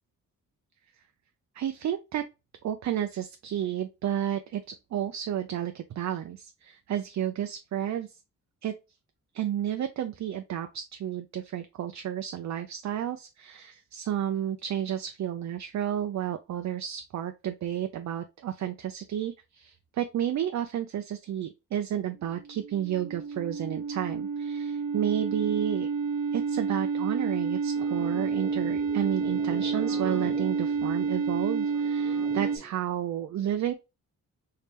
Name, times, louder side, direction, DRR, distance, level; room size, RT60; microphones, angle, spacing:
voice 1, 1.5-2.3 2.6-8.2 8.6-8.7 9.3-25.9 26.3-33.7, right 10 dB, 55° right, 0.5 m, -31 dB
sound 1, 22.3-32.6, right 5 dB, 75° right, 0.9 m, -29 dB
sound 2, 27.8-32.8, right 1 dB, ahead, 0.9 m, -44 dB
3.3 x 2.8 x 3.3 m
cardioid pair, 80°, 34 cm